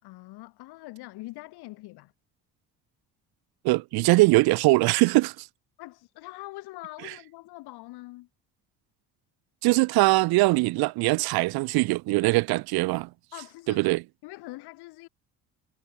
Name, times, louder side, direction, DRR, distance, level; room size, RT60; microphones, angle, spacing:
voice 1, 0.0-2.1 5.8-8.3 13.3-13.9 14.2-15.1, left 20 dB, 75° left, 3.5 m, -43 dB
voice 2, 3.6-5.5 9.6-13.1 13.7-14.0, right 22 dB, 70° right, 0.8 m, -22 dB
supercardioid pair, 75°, 39 cm